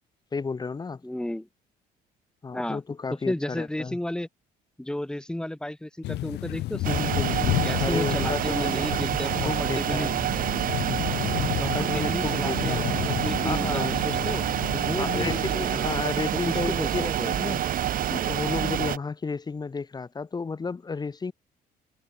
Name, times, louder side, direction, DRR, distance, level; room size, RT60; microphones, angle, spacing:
voice 1, 0.3-1.0 2.4-4.0 7.6-9.1 9.4-10.2 11.6-13.2 13.4-14.0 15.0-21.3, left 4 dB, 25° left, 2.2 m, -32 dB
voice 2, 1.0-1.5 2.5-2.8 3.3-4.3 4.8-10.1 11.6-12.8 13.2-14.5 14.7-16.0 16.3-17.4, left 1 dB, 5° left, 2.1 m, -33 dB
sound 1, 6.0-15.4, left 17 dB, 80° left, 5.5 m, -31 dB
sound 2, 6.8-19.0, right 11 dB, 55° right, 1.7 m, -27 dB
cardioid pair, 110°, 17 cm